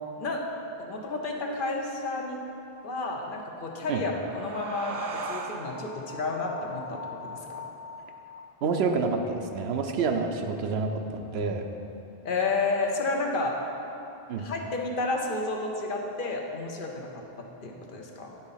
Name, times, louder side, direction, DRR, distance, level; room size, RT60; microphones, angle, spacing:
voice 1, 0.8-2.4 2.8-7.6 12.2-13.6 14.4-18.4, left 3 dB, 60° left, 1 dB, 0.9 m, -31 dB
sound 1, 3.6-8.8, right 4 dB, 50° right, 0.5 m, -41 dB
sound 2, 5.6-10.7, left 6 dB, 35° left, 0.5 m, -45 dB
voice 2, 8.6-11.6 14.3-14.5, right 4 dB, 85° right, 4 dB, 0.9 m, -28 dB
9.6 x 3.9 x 5.6 m, 2.9 s
omnidirectional pair, 1.0 m